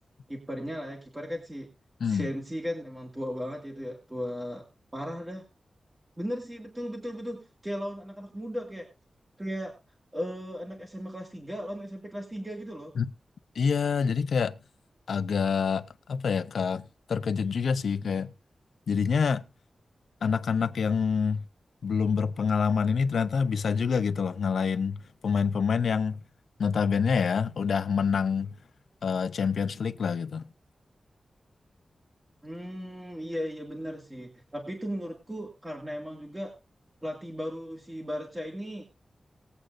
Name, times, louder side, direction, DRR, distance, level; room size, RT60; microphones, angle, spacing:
voice 1, 0.3-1.7 2.0-4.6 4.9-5.4 6.2-8.9 9.4-9.7 10.1-12.9 32.4-36.5 37.0-38.8, equal, 15° right, 1.9 m, -36 dB
voice 2, 13.6-14.5 15.1-16.8 17.1-18.3 18.9-19.4 20.2-21.4 21.8-25.0 25.2-26.2 26.6-28.5 29.0-30.5, left 6 dB, 85° left, 0.6 m, -26 dB
20.0 x 8.2 x 2.5 m
wide cardioid pair, 170°, 0 cm